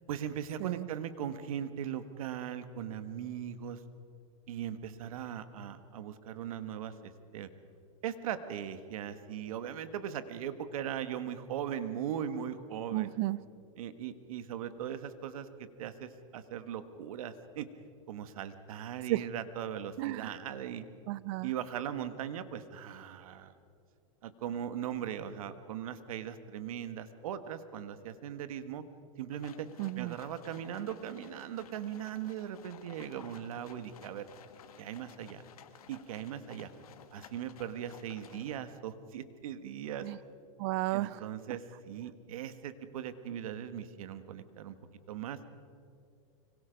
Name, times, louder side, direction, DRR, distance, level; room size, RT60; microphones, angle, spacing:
voice 1, 0.1-3.8 4.5-7.5 8.0-13.1 13.8-17.7 18.1-20.9 21.4-23.5 24.2-28.8 29.2-29.7 30.0-34.3 34.8-35.4 35.9-36.7 37.1-40.1 40.9-44.8 45.1-45.4, right 9 dB, 70° right, 11 dB, 1.6 m, -39 dB
voice 2, 12.9-13.4 19.1-19.3 20.0-20.4 21.1-21.5 29.8-30.2 40.0-40.2 40.6-41.3, right 18 dB, 50° right, 20 dB, 0.6 m, -33 dB
sound 1, 29.3-38.6, left 8 dB, 90° left, 1.9 m, -55 dB
25.0 x 24.0 x 5.2 m, 2.4 s
supercardioid pair, 140°, 18 cm